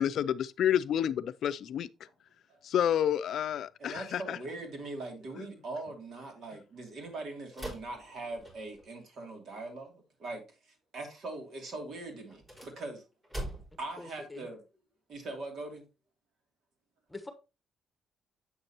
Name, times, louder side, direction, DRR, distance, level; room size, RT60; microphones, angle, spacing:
voice 1, 0.0-1.9 2.6-4.4, left 10 dB, 70° left, 0.4 m, -29 dB
voice 2, 3.8-10.4 10.9-13.0 13.8-14.6 15.1-15.8, right 2 dB, 65° right, 2.7 m, -41 dB
sound 1, 7.5-8.9 12.2-13.9, right 1 dB, 25° right, 4.9 m, -42 dB
voice 3, 14.0-14.5 17.1-17.3, left 2 dB, 10° left, 1.2 m, -44 dB
7.8 x 6.6 x 2.9 m
cardioid pair, 90°, 0 cm